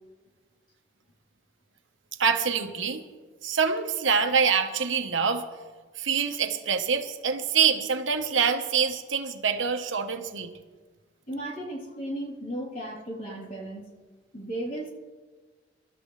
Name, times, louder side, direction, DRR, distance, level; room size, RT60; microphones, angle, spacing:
voice 1, 2.2-3.0 3.4-5.4 6.0-10.5, right 6 dB, 85° right, 7 dB, 1.2 m, -25 dB
voice 2, 11.3-13.8 14.3-14.9, right 1 dB, 45° left, -4 dB, 3.5 m, -35 dB
26.0 x 12.5 x 3.3 m, 1.4 s
head